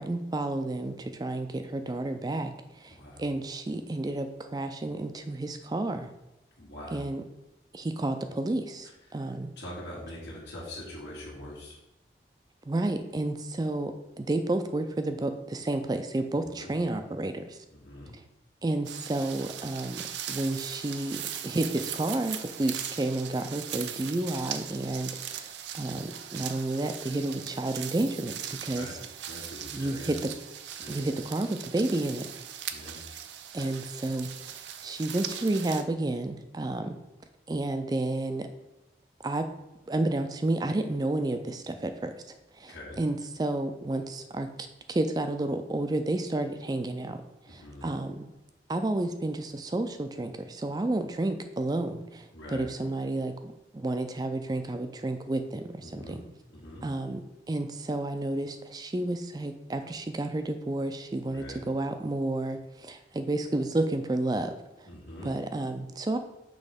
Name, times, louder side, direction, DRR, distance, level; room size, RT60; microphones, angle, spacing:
voice 1, 0.0-2.5 2.8-6.1 6.9-7.2 7.7-9.5 12.7-17.6 18.6-28.9 29.7-30.2 30.9-32.3 33.5-37.0 37.5-38.5 39.2-39.5 39.9-42.1 42.6-44.5 44.9-47.2 47.5-48.2 48.7-56.2 56.8-57.2 57.5-64.5 65.2-66.2, right 2 dB, 20° right, 8 dB, 0.3 m, -31 dB
voice 2, 2.9-3.3 6.6-7.1 8.8-11.8 16.4-16.8 17.7-18.2 28.7-29.0 29.3-30.2 30.8-31.1 32.7-33.0 42.7-43.0 47.5-48.0 52.3-52.7 55.8-56.9 61.3-61.7 64.8-65.4, left 1 dB, 85° left, -6 dB, 1.6 m, -44 dB
sound 1, 18.8-35.8, right 10 dB, 80° right, 0.5 m, -39 dB
6.3 x 3.2 x 5.0 m, 0.95 s
head